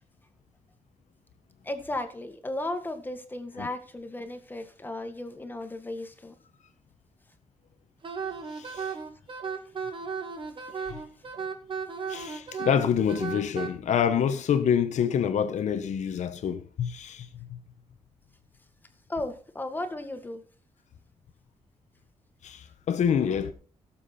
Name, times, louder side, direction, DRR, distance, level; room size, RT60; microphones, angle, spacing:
voice 1, 1.6-6.3 19.1-20.4, left 1 dB, 15° left, 1.8 m, -35 dB
Wind instrument woodwind instrument, 8.0-13.7, right 6 dB, 45° right, 2.1 m, -35 dB
voice 2, 8.5-8.9 10.8-11.0 12.1-17.6 22.4-23.5, left 8 dB, 85° left, 1.1 m, -27 dB
17.5 x 7.5 x 4.3 m
wide cardioid pair, 150°, 12 cm